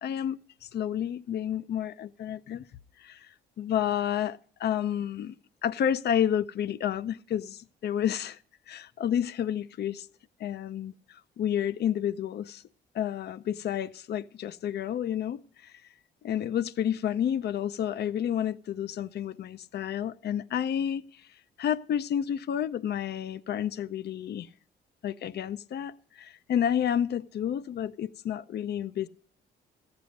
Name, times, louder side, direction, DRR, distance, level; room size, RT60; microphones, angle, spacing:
voice 1, 0.0-2.6 3.0-5.4 5.6-8.4 8.7-10.1 10.4-12.6 12.9-15.8 16.2-24.5 25.0-29.1, left 9 dB, 55° left, 0.6 m, -30 dB
14.5 x 9.8 x 5.2 m
cardioid pair, 90°, 20 cm